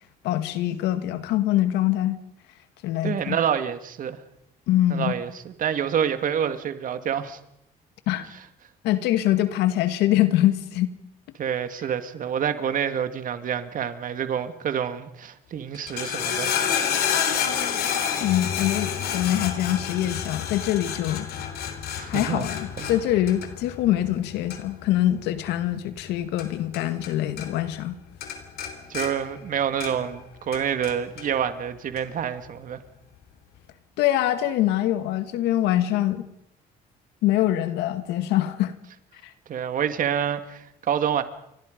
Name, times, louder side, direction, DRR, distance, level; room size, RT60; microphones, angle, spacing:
voice 1, 0.2-2.2 2.8-3.4 4.7-5.2 8.1-8.3 8.8-10.9 18.2-21.3 22.1-28.0 34.0-36.2 37.2-38.7 39.2-39.3, left 13 dB, 90° left, 2.0 m, -24 dB
voice 2, 3.0-4.2 4.9-7.4 11.4-16.6 22.0-22.5 22.8-22.9 28.9-32.8 39.5-41.2, right 8 dB, 50° right, 2.1 m, -27 dB
sound 1, 15.7-27.1 27.4-27.9 28.2-30.2 30.5-31.3 32.0-32.1, left 8 dB, 70° left, 3.7 m, -29 dB
29.5 x 24.5 x 5.3 m
cardioid pair, 110°, 17 cm